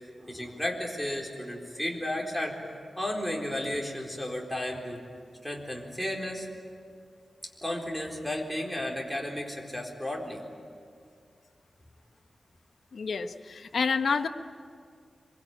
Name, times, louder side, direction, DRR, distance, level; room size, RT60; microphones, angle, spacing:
voice 1, 0.2-2.6 3.0-5.0 5.4-6.5 7.6-10.4, left 1 dB, ahead, -2 dB, 4.0 m, -33 dB
voice 2, 12.9-14.3, left 5 dB, 75° left, 9 dB, 1.0 m, -28 dB
25.5 x 23.5 x 9.0 m, 2.2 s
wide cardioid pair, 130°, 0 cm